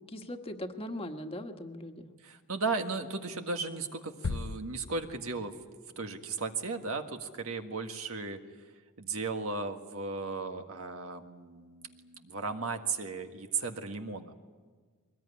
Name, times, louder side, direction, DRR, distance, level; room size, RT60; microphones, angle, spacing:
voice 1, 0.0-2.1, left 1 dB, 25° left, 5 dB, 1.4 m, -40 dB
voice 2, 2.2-5.5 6.0-8.4 9.0-14.3, right 4 dB, 70° right, 5 dB, 1.7 m, -36 dB
sound 1, 4.2-5.6, left 3 dB, 65° left, 0.7 m, -38 dB
22.5 x 20.0 x 9.9 m, 1.5 s
head